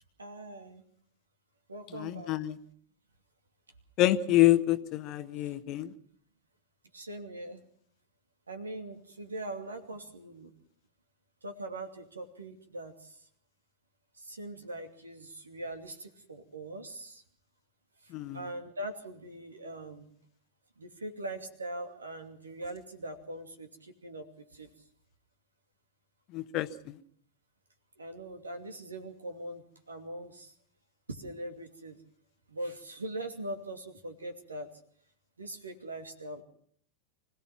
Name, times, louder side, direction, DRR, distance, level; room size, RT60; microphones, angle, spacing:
voice 1, 0.2-0.8 1.7-2.4 6.9-7.6 8.5-10.5 11.4-13.2 14.2-17.2 18.0-20.1 20.8-24.3 24.5-24.7 28.0-30.5 31.1-32.0 32.5-34.7 35.4-36.4, right 1 dB, 75° right, 6 dB, 2.6 m, -41 dB
voice 2, 1.9-2.6 4.0-5.9 18.1-18.4 26.3-26.7, left 15 dB, 40° left, 12 dB, 1.1 m, -26 dB
25.5 x 17.0 x 6.0 m, 0.62 s
figure-of-eight pair, 90°, 0 cm